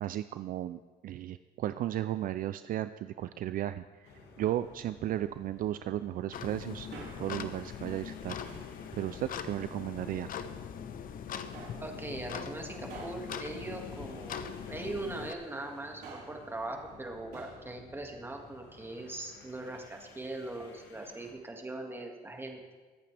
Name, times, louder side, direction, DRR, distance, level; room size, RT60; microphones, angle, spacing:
voice 1, 0.0-4.1 4.4-6.9 7.2-8.4 9.0-10.3, right 12 dB, 55° right, 12 dB, 0.4 m, -35 dB
sound 1, 4.0-21.4, left 3 dB, 80° left, 2.0 m, -56 dB
sound 2, 6.3-15.3, left 8 dB, 55° left, 0.8 m, -41 dB
Male speech man speaking, 6.9-7.5 8.4-8.8 9.6-10.4 11.5-11.9 12.9-14.6 15.8-16.5 17.3-17.7 17.9-18.0, right 4 dB, 75° right, 3.9 m, -50 dB
voice 2, 11.8-22.7, right 2 dB, 15° right, 2 dB, 2.0 m, -41 dB
24.0 x 8.5 x 3.4 m, 1.4 s
cardioid pair, 110°, 17 cm